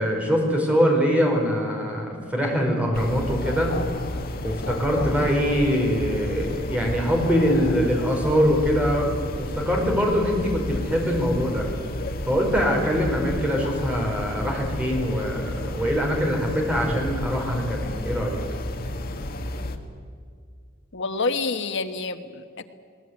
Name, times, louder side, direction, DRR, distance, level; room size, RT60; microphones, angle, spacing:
voice 1, 0.0-3.7 4.4-9.1 9.4-11.7 12.3-18.4, equal, 5° right, 0 dB, 4.9 m, -23 dB
sound 1, 2.9-19.8, left 1 dB, 50° left, 1.6 m, -31 dB
voice 2, 20.9-22.6, left 3 dB, 65° left, 8 dB, 1.3 m, -28 dB
20.5 x 19.0 x 9.6 m, 2.1 s
head